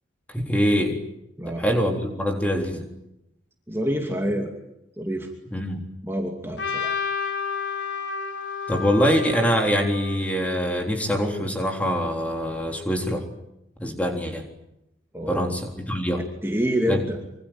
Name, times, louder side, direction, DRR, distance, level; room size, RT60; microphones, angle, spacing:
voice 1, 0.3-1.0 1.5-2.8 5.5-5.8 8.7-13.3 13.8-14.4 15.3-16.3 16.9-17.2, equal, 5° left, 3 dB, 3.8 m, -24 dB
voice 2, 3.7-4.5 5.0-5.3 6.0-7.0 15.1-15.5 16.4-17.2, equal, 10° right, 2 dB, 2.6 m, -27 dB
Trumpet, 6.6-10.7, left 6 dB, 70° left, 4.5 m, -31 dB
26.0 x 25.5 x 9.0 m, 0.86 s
head